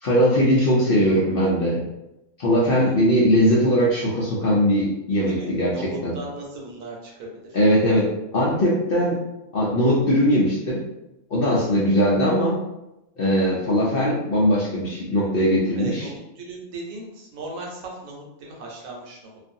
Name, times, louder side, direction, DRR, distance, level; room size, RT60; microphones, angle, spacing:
voice 1, 0.0-1.8 2.4-5.7 6.0-6.1 7.5-9.2 9.5-10.8 11.3-12.6 13.2-16.1, equal, 60° left, -6 dB, 0.6 m, -20 dB
voice 2, 2.7-3.0 5.2-7.6 11.6-11.9 15.7-19.4, right 2 dB, 75° right, -1 dB, 1.1 m, -37 dB
2.5 x 2.3 x 2.6 m, 0.90 s
omnidirectional pair, 1.5 m